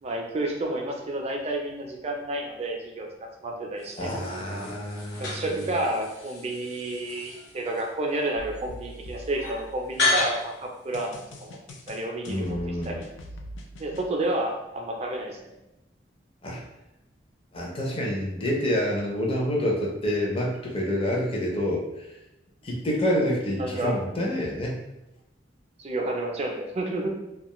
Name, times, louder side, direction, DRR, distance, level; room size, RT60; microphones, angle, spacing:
voice 1, 0.0-3.1 3.4-4.1 5.2-11.6 11.9-13.1 13.8-15.5 23.6-23.9 25.8-27.1, right 1 dB, 35° right, 1 dB, 0.4 m, -30 dB
sound 1, 3.8-11.4, left 3 dB, 65° left, 0.9 m, -32 dB
voice 2, 4.0-5.4 12.3-13.0 16.4-16.6 17.5-21.9 22.6-24.8, equal, 30° left, -2 dB, 0.6 m, -27 dB
sound 2, 8.4-10.2 10.9-14.1, equal, 85° left, 0.4 m, -43 dB
2.4 x 2.3 x 2.9 m, 0.92 s
head